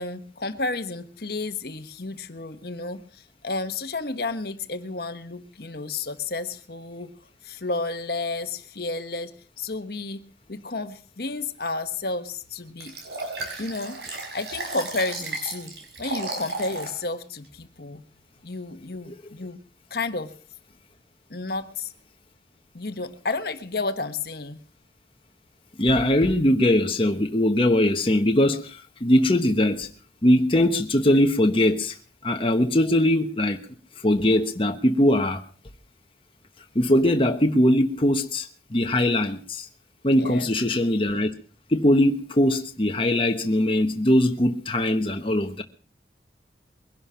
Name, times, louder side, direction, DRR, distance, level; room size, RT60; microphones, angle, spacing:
voice 1, 0.0-7.1 7.4-10.2 10.5-13.0 13.6-14.0 14.3-18.0 18.4-19.6 19.9-20.3 21.3-21.9 22.7-24.6 40.2-40.5, left 3 dB, 60° left, 1.3 m, -31 dB
Liquid, 12.8-17.0 17.4-17.5, right 2 dB, 70° right, 5.4 m, -34 dB
voice 2, 25.8-29.9 30.2-32.0 32.2-33.6 34.0-35.4 36.7-39.7 40.0-41.3 41.7-45.6, left 1 dB, 30° left, 1.1 m, -21 dB
22.0 x 11.0 x 5.7 m
head